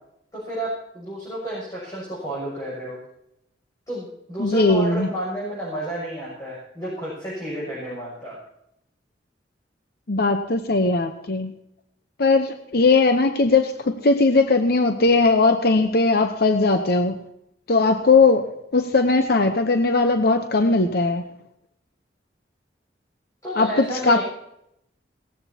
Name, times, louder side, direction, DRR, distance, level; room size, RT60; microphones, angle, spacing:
voice 1, 0.3-3.0 3.9-8.4 23.4-24.2, right 1 dB, 20° left, -7 dB, 6.9 m, -31 dB
voice 2, 4.4-5.1 10.1-11.5 12.2-17.2 17.7-21.2 23.5-24.2, left 3 dB, 55° left, 7 dB, 0.8 m, -19 dB
18.5 x 15.0 x 2.9 m, 0.78 s
head